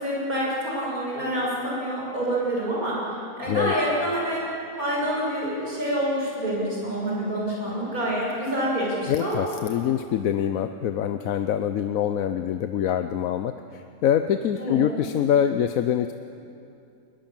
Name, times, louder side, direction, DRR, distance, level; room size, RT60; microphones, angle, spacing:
voice 1, 0.0-3.0 3.4-4.4 4.8-9.4 14.6-14.8, right 1 dB, 80° right, -5 dB, 7.0 m, -27 dB
voice 2, 9.1-16.1, left 9 dB, 75° left, 9 dB, 1.1 m, -25 dB
21.5 x 21.0 x 7.4 m, 2.6 s
omnidirectional pair, 1.5 m